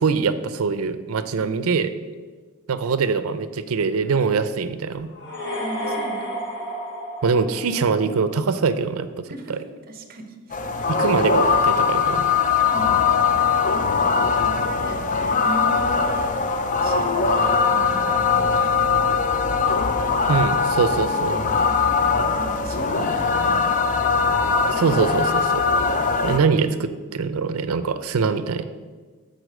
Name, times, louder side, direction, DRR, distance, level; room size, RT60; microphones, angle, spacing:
voice 1, 0.0-1.9 2.7-5.1 7.2-9.2 9.5-9.6 10.9-12.2 20.3-21.4 24.7-25.6 26.2-28.6, right 5 dB, 75° right, 12 dB, 0.5 m, -23 dB
voice 2, 1.4-1.8 5.6-6.3 9.3-10.7 12.7-13.2 14.4-16.5 16.8-19.1 21.0-22.0 22.3-23.8, right 1 dB, 40° right, 6 dB, 0.8 m, -38 dB
sound 1, 5.1-8.1, equal, 50° left, 1.8 m, -31 dB
sound 2, 10.5-26.4, left 5 dB, 35° left, 0.4 m, -21 dB
7.9 x 4.1 x 6.4 m, 1.4 s
head